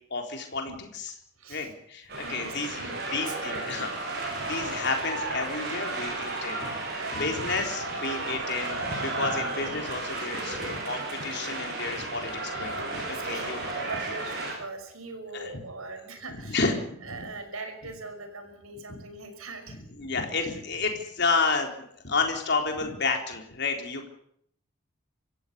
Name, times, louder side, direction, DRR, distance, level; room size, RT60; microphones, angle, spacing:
voice 1, 0.1-1.1 1.5-3.9 4.2-6.7 7.1-13.6 15.3-15.6 16.4-17.3 18.9-19.0 19.7-24.1, left 4 dB, 55° left, 3 dB, 3.8 m, -31 dB
sound 1, 2.1-14.5, right 2 dB, 50° right, 7.8 m, -33 dB
voice 2, 2.2-4.4 7.0-7.2 13.1-16.6 17.0-19.8, right 3 dB, 90° right, 6 dB, 5.8 m, -41 dB
26.0 x 15.0 x 8.3 m, 0.68 s
head